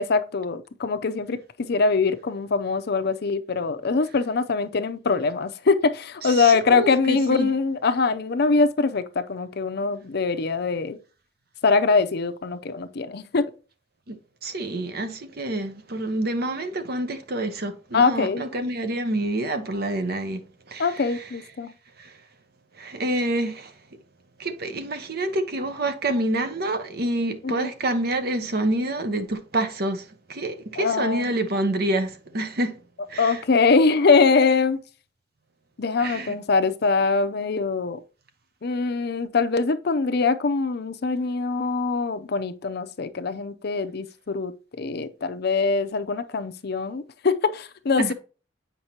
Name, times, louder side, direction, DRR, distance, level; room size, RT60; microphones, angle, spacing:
voice 1, 0.0-11.0 11.6-13.4 17.9-18.4 20.8-21.7 27.4-27.7 30.8-31.3 33.2-34.8 35.8-38.0 38.6-44.5 44.8-48.1, left 4 dB, 60° left, 0.6 m, -23 dB
voice 2, 6.2-7.5 14.1-14.2 14.4-21.3 22.0-22.1 22.8-23.7 24.4-30.0 30.3-32.8 33.1-33.4 36.0-36.4 48.0-48.1, right 1 dB, 55° right, 1.0 m, -27 dB
8.0 x 5.3 x 2.9 m
head